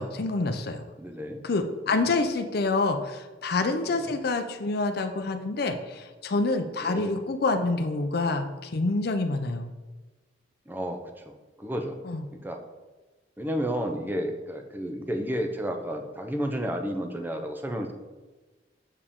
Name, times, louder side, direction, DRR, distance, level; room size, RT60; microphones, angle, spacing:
voice 1, 0.0-0.8 1.4-9.7 12.0-12.2, left 3 dB, 55° left, 6 dB, 0.5 m, -27 dB
voice 2, 1.0-1.4 1.9-2.1 3.9-4.2 6.8-7.1 10.7-12.0 12.4-12.6 13.4-17.9, equal, 10° right, 4 dB, 0.6 m, -32 dB
6.8 x 4.9 x 3.6 m, 1.2 s
head